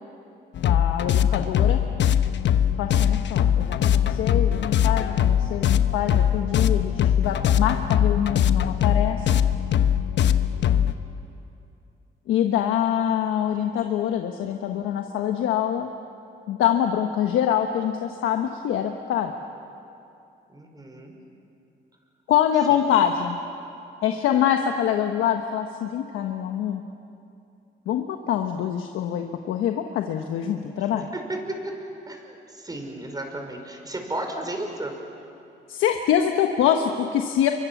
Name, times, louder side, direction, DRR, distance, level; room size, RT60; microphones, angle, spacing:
sound 1, 0.5-10.9, left 9 dB, 65° left, 1.0 m, -21 dB
voice 1, 0.6-1.8 2.8-9.3 12.3-15.9 16.5-19.3 22.3-23.4 24.0-26.8 27.9-31.1 35.7-37.5, left 9 dB, 90° left, 5 dB, 1.3 m, -25 dB
voice 2, 1.3-1.9 10.3-10.9 20.5-21.1 22.7-22.9 30.8-31.7 32.1-35.0, right 1 dB, 20° right, 3 dB, 5.4 m, -35 dB
29.0 x 24.0 x 7.2 m, 2.7 s
cardioid pair, 90°, 20 cm